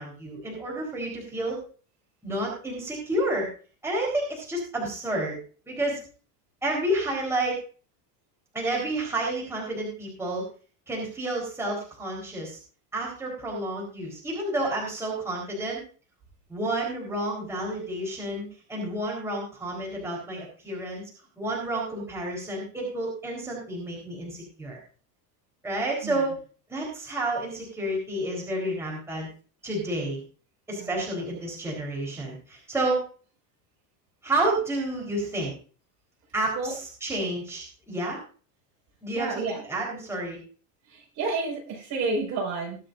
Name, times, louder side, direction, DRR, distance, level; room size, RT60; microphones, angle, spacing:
voice 1, 0.0-1.6 2.2-3.5 3.8-5.4 5.7-6.0 6.6-7.6 8.5-10.4 10.9-12.6 12.9-15.8 16.5-21.0 21.4-24.8 25.6-26.3 26.7-29.3 29.6-30.2 30.7-33.0 34.2-35.5 36.3-38.2 39.0-40.4, right 1 dB, 5° right, -3 dB, 4.2 m, -30 dB
voice 2, 39.1-39.6 40.9-42.8, right 3 dB, 40° right, -1 dB, 5.4 m, -30 dB
21.5 x 7.6 x 2.6 m, 0.39 s
cardioid pair, 155°, 42 cm